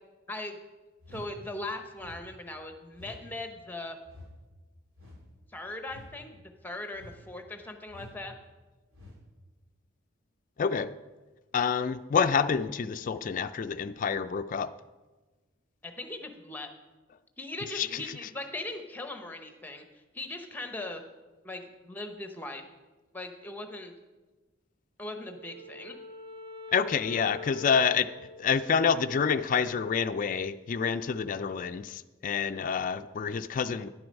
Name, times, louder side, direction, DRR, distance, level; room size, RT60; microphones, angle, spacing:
sound 1, 1.0-1.4 2.0-2.3 2.9-3.3 4.0-4.3 5.0-5.3 5.9-6.1 6.9-7.3 7.9-8.2 8.9-9.2, left 1 dB, 90° right, 2.6 m, -49 dB
voice 1, 1.1-4.0 5.5-8.4 15.8-16.7 17.4-21.0 21.4-22.6 23.1-23.9 25.0-26.0, left 2 dB, 10° left, 5 dB, 0.8 m, -39 dB
voice 2, 10.6-10.9 11.5-14.7 17.6-18.3 26.7-28.1 28.4-33.9, left 6 dB, 40° left, 10 dB, 0.3 m, -28 dB
Wind instrument woodwind instrument, 25.1-29.6, left 4 dB, 25° right, 0.9 m, -46 dB
10.5 x 7.8 x 5.3 m, 1.2 s
head